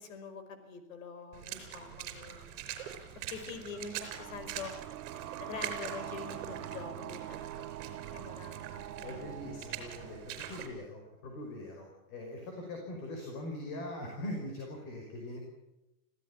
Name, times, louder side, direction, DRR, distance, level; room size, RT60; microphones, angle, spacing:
voice 1, 0.0-2.6 3.1-4.7 5.4-9.2, left 5 dB, 65° left, 9 dB, 5.1 m, -45 dB
Water / Splash splatter, 1.3-10.7, right 10 dB, 40° right, 4.8 m, -44 dB
sound 1, 3.7-11.1, right 13 dB, 80° right, 1.5 m, -45 dB
voice 2, 9.0-15.4, left 1 dB, 35° left, 2 dB, 5.5 m, -42 dB
26.0 x 16.5 x 8.7 m, 0.96 s
supercardioid pair, 180°, 44 cm